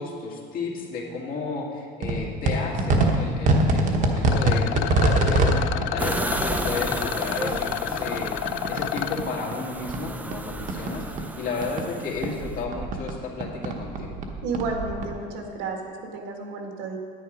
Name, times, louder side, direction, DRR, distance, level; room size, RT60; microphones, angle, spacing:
voice 1, 0.0-8.4 8.7-11.0 11.4-14.2, left 4 dB, 45° left, -1 dB, 1.9 m, -33 dB
sound 1, 2.0-9.3 9.5-11.9 12.1-15.1, right 2 dB, 40° right, 1.1 m, -25 dB
Rattle, 4.3-9.2, left 14 dB, 85° left, 0.4 m, -30 dB
sound 2, 6.0-12.6, right 2 dB, 10° right, 0.4 m, -34 dB
voice 2, 14.4-17.0, right 3 dB, 85° right, 2 dB, 1.8 m, -32 dB
9.9 x 9.7 x 5.0 m, 2.1 s
cardioid pair, 165°, 19 cm